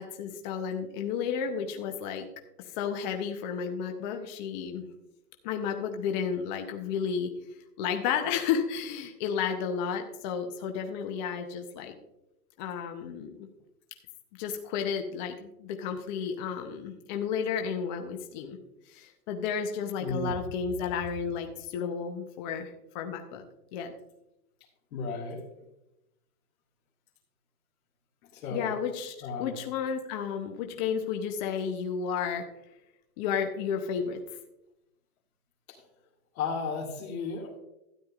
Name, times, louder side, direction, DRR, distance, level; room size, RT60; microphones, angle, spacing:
voice 1, 0.0-2.2 2.6-4.9 5.4-7.3 7.8-11.9 12.6-13.5 14.4-18.6 18.9-23.4 23.7-23.9 28.5-32.5 33.2-34.2, left 7 dB, 30° left, 4 dB, 0.7 m, -32 dB
voice 2, 20.0-20.3 24.9-25.4 28.3-28.7 29.2-29.5 36.4-37.6, left 4 dB, 65° left, -4 dB, 2.2 m, -34 dB
12.5 x 9.9 x 2.4 m, 0.87 s
supercardioid pair, 155°, 46 cm